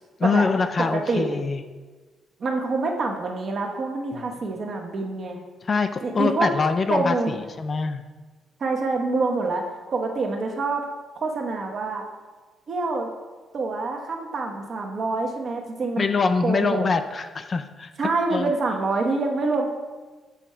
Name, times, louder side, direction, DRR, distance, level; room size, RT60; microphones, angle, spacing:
voice 1, 0.2-1.6 4.1-4.3 5.6-8.0 16.0-17.9 18.3-18.5, left 4 dB, 40° left, 8 dB, 0.4 m, -24 dB
voice 2, 0.9-1.3 2.4-5.4 6.0-6.5 6.9-7.3 8.6-9.6 9.9-10.8 11.1-12.0 12.7-13.1 13.5-16.0 16.4-16.9 18.0-19.7, right 3 dB, 50° right, 2 dB, 1.0 m, -26 dB
7.0 x 3.6 x 4.3 m, 1.3 s
cardioid pair, 90°, 0 cm